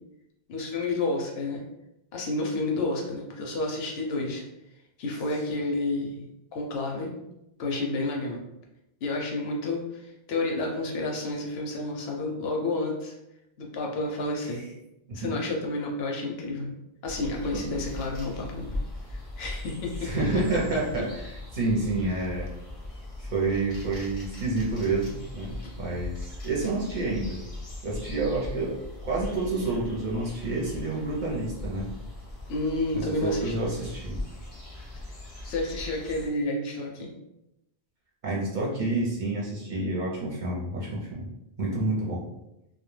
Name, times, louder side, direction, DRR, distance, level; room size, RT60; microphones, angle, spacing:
voice 1, 0.5-1.7 2.1-4.4 5.0-7.1 7.6-8.4 9.0-13.1 13.6-14.6 15.1-16.7 17.0-18.7 19.4-20.3 32.5-33.5 35.4-37.1, left 2 dB, 70° left, 0 dB, 0.8 m, -30 dB
sound 1, 17.0-36.3, left 2 dB, 40° left, 0.6 m, -39 dB
voice 2, 20.0-22.5 23.2-27.4 27.8-28.8 29.0-31.9 32.9-34.2 38.2-41.3 41.6-42.2, right 2 dB, 55° right, -4 dB, 0.7 m, -29 dB
2.2 x 2.1 x 3.1 m, 0.88 s
omnidirectional pair, 1.1 m